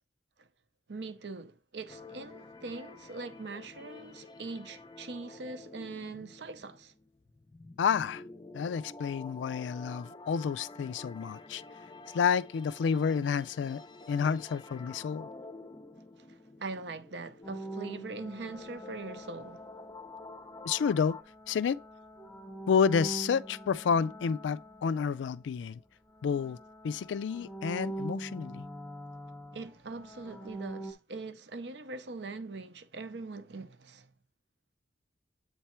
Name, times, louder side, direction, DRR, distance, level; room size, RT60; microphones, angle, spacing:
voice 1, 0.9-6.9 16.2-19.6 29.5-34.1, right 3 dB, 70° right, 0.7 m, -42 dB
sound 1, 1.9-21.2, left 3 dB, 25° left, 0.5 m, -49 dB
voice 2, 7.8-8.2 8.5-11.6 12.1-13.8 14.1-15.3 20.6-21.2 21.5-21.8 22.7-25.8 26.2-26.6 26.8-28.7, left 6 dB, 90° left, 0.3 m, -30 dB
sound 2, 17.4-20.3 21.0-25.8 26.1-30.9, right 1 dB, 5° left, 0.9 m, -43 dB
8.0 x 3.3 x 4.3 m
head